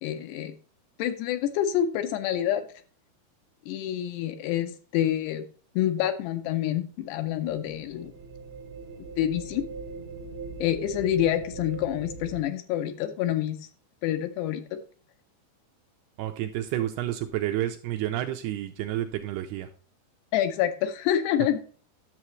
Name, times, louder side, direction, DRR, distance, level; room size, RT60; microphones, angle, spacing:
voice 1, 0.0-0.5 1.0-2.7 3.7-5.5 5.8-8.1 9.2-9.6 10.6-13.6 14.0-14.6 20.3-21.6, left 11 dB, 80° left, 8 dB, 2.6 m, -27 dB
sound 1, 7.2-12.4, right 3 dB, 65° right, 1.8 m, -40 dB
voice 2, 16.2-19.7, right 13 dB, 80° right, 5 dB, 2.4 m, -30 dB
10.5 x 7.1 x 3.1 m, 0.42 s
omnidirectional pair, 5.1 m